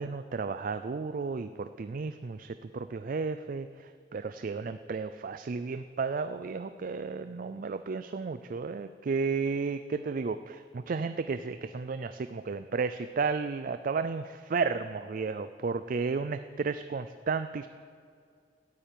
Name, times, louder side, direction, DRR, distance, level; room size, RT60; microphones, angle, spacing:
voice 1, 0.0-3.7 4.1-17.7, right 4 dB, 50° right, 11 dB, 0.4 m, -33 dB
13.0 x 8.9 x 9.0 m, 2.2 s
head